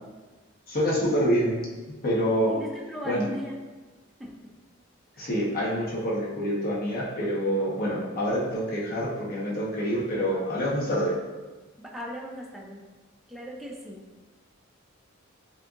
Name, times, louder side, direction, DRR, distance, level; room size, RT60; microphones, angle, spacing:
voice 1, 0.7-1.6 2.0-2.5 3.0-3.3 5.2-11.1, equal, 45° left, -6 dB, 1.2 m, -26 dB
voice 2, 2.6-3.6 4.2-4.4 5.2-5.3 11.8-12.8 13.3-14.0, equal, ahead, -3 dB, 0.5 m, -38 dB
7.7 x 2.7 x 2.5 m, 1.3 s
head